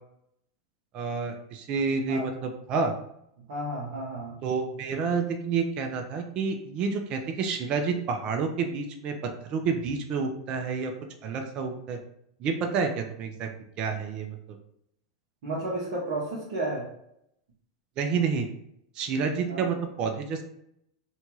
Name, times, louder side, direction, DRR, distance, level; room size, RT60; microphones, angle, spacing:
voice 1, 0.9-2.9 4.4-10.9 11.2-12.0 12.4-13.5 13.8-14.4 18.0-18.5 19.0-20.4, right 5 dB, 40° right, 5 dB, 0.4 m, -29 dB
voice 2, 3.5-4.4 15.4-16.9 19.5-19.6, right 1 dB, 65° right, -6 dB, 0.8 m, -32 dB
2.7 x 2.3 x 2.9 m, 0.75 s
hypercardioid pair, 100°, 2 cm